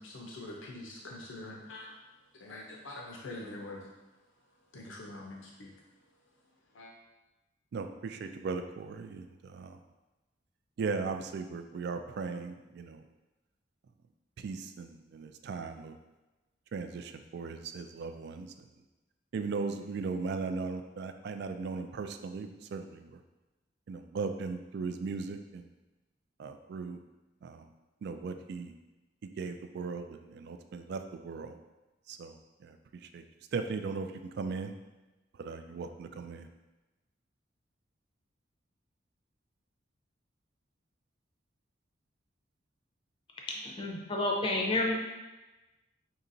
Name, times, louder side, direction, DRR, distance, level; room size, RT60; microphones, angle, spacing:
voice 1, 0.0-1.9 2.3-3.9 4.7-5.8 6.7-6.9, left 2 dB, 85° left, -1 dB, 0.6 m, -44 dB
voice 2, 7.7-9.8 10.8-13.0 14.4-16.0 16.7-18.7 19.3-23.2 23.9-25.7 26.4-27.0 27.4-27.7 28.0-28.7 29.4-31.6 32.1-32.4 32.6-33.2 33.5-34.7 35.4-36.5, right 4 dB, 55° right, 7 dB, 0.3 m, -38 dB
voice 3, 43.6-44.9, left 2 dB, 25° left, -1 dB, 0.5 m, -30 dB
5.4 x 2.8 x 2.6 m, 1.1 s
head